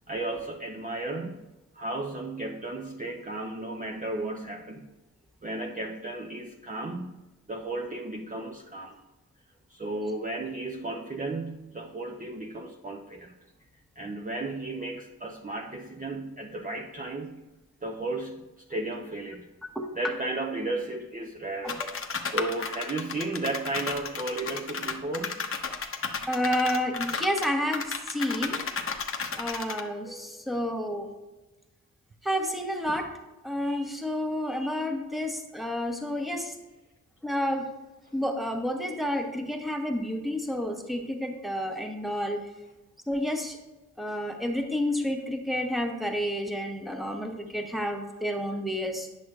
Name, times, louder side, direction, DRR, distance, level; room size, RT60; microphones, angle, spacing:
voice 1, 0.1-1.4 1.7-4.9 5.4-7.2 7.5-9.0 9.7-13.3 14.0-17.4 17.8-19.5 20.0-21.8 22.3-25.4, right 2 dB, 25° right, 1 dB, 0.6 m, -34 dB
sound 1, 21.7-29.8, left 5 dB, 35° left, 0.8 m, -33 dB
voice 2, 26.3-28.6 29.4-31.1 32.2-33.1 33.4-36.5 37.2-37.7 38.1-42.4 43.1-43.6 44.0-49.1, equal, ahead, 3 dB, 1.1 m, -30 dB
9.7 x 6.1 x 2.4 m, 1.1 s
cardioid pair, 65°, 36 cm